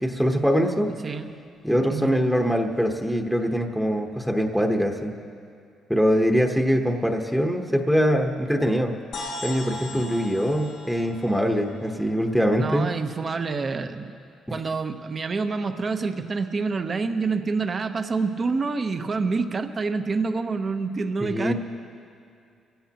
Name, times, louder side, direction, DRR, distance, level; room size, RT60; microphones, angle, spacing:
voice 1, 0.0-0.9 1.6-5.1 5.9-8.9 9.4-12.9 21.2-21.5, equal, ahead, 2 dB, 1.0 m, -23 dB
sound 1, 9.1-12.9, left 2 dB, 75° left, 1.9 m, -39 dB
voice 2, 12.6-14.1 14.5-21.5, right 4 dB, 40° right, 7 dB, 0.9 m, -27 dB
23.5 x 16.0 x 2.9 m, 2.4 s
cardioid pair, 90°, 0 cm